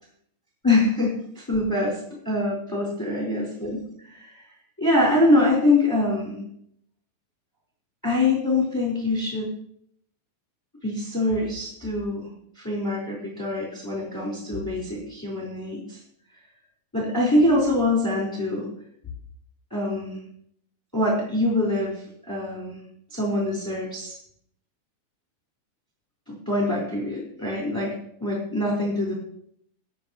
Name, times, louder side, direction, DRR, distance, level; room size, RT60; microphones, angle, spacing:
voice 1, 0.6-2.0 2.2-4.4 4.8-6.4 8.0-9.5 10.8-12.3 12.6-16.0 16.9-18.7 19.7-20.2 20.9-22.8 23.1-24.2 26.3-27.9 28.2-29.1, left 2 dB, 5° left, -4 dB, 3.4 m, -24 dB
19.5 x 9.4 x 3.1 m, 0.69 s
omnidirectional pair, 5.7 m